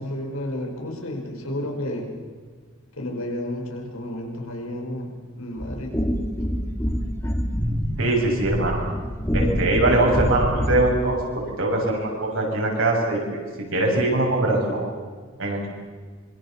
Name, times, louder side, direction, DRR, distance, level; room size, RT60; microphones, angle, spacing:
voice 1, 0.0-2.1 3.0-5.9, left 1 dB, 85° left, 2 dB, 5.2 m, -31 dB
sound 1, 5.6-11.0, equal, 10° left, 2.7 m, -26 dB
voice 2, 8.0-8.8 9.3-13.4 13.7-14.9 15.4-15.7, right 2 dB, 70° right, -1 dB, 7.3 m, -22 dB
26.0 x 24.0 x 7.4 m, 1.5 s
head